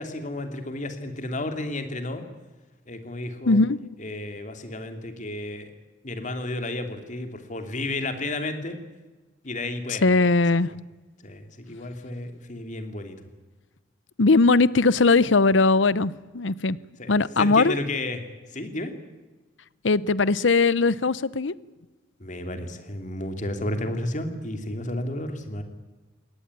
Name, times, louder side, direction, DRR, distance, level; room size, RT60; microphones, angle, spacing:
voice 1, 0.0-2.2 2.9-3.6 4.0-5.7 6.0-8.8 9.4-10.2 11.2-13.2 17.0-18.2 18.5-18.9 22.2-25.6, left 1 dB, 40° left, 7 dB, 2.9 m, -32 dB
voice 2, 3.5-3.9 10.0-10.7 14.2-16.8 17.1-17.8 19.8-21.5, left 3 dB, 80° left, 20 dB, 0.8 m, -20 dB
21.5 x 18.0 x 9.8 m, 1.2 s
head